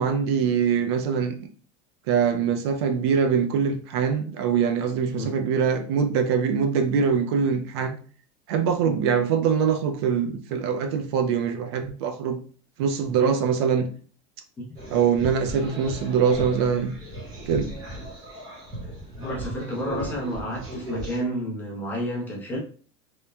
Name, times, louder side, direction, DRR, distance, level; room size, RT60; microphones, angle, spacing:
voice 1, 0.0-1.4 2.1-8.0 8.5-12.4 12.8-13.9 14.9-17.0 17.5-17.7, right 6 dB, 70° right, 6 dB, 0.4 m, -23 dB
sound 1, 14.8-21.2, right 1 dB, 30° right, 0.9 m, -37 dB
voice 2, 19.2-22.6, equal, 15° left, -4 dB, 0.6 m, -30 dB
3.0 x 2.1 x 2.2 m, 0.42 s
supercardioid pair, 175°, 14 cm